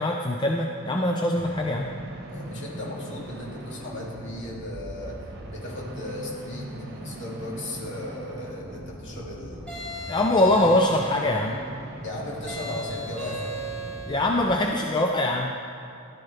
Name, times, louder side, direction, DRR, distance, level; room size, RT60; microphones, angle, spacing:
voice 1, 0.0-1.9 10.1-11.6 14.1-15.5, left 1 dB, 20° left, 1 dB, 0.5 m, -23 dB
sound 1, 1.3-14.6, right 1 dB, 45° right, 1.3 m, -40 dB
voice 2, 2.3-9.9 12.0-13.5 14.6-14.7, left 1 dB, 55° left, -3 dB, 2.4 m, -36 dB
sound 2, 9.7-11.4 12.5-14.2, right 2 dB, 5° left, 3.3 m, -36 dB
14.5 x 12.0 x 3.4 m, 2.6 s
head